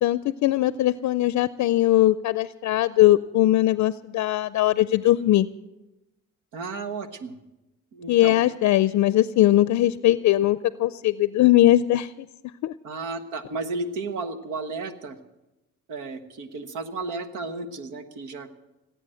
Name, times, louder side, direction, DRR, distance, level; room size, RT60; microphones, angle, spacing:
voice 1, 0.0-5.5 8.1-12.3 12.6-12.7, left 14 dB, 65° left, 16 dB, 0.5 m, -20 dB
voice 2, 6.5-7.3 7.9-8.4 12.8-15.2 15.9-18.5, right 3 dB, 85° right, 10 dB, 1.4 m, -33 dB
18.5 x 8.8 x 7.7 m, 1.0 s
cardioid pair, 90°, 30 cm